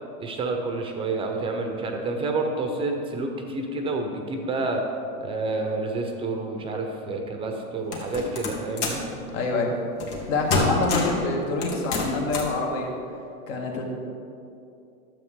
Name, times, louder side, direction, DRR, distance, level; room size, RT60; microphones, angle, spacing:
voice 1, 0.2-4.8 5.2-9.0 10.5-10.8, right 3 dB, 10° right, 3 dB, 0.7 m, -29 dB
sound 1, 7.9-9.1 10.0-10.2 10.5-11.2 11.6-12.6, left 3 dB, 75° left, 2.2 m, -27 dB
voice 2, 9.3-9.7 10.3-12.9 13.5-13.8, left 3 dB, 55° left, 0 dB, 1.9 m, -26 dB
12.0 x 7.6 x 3.7 m, 2.6 s
supercardioid pair, 140°, 46 cm